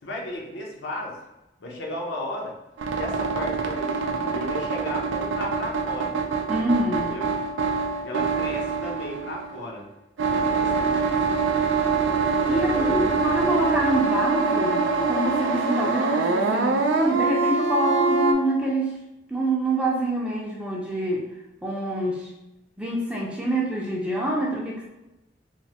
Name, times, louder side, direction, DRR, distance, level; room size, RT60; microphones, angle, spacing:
voice 1, 0.0-1.2 1.6-2.5 3.0-6.2 6.8-7.3 8.0-9.9 10.3-11.5 12.4-13.2, left 1 dB, 85° left, -2 dB, 0.7 m, -35 dB
sound 1, 2.8-9.7 10.2-18.3, right 4 dB, 85° right, 0.4 m, -24 dB
voice 2, 6.5-7.2 12.5-19.0 19.3-21.3 21.6-22.3 22.8-24.8, right 1 dB, 5° right, -4 dB, 0.4 m, -26 dB
3.1 x 2.1 x 2.8 m, 0.94 s
head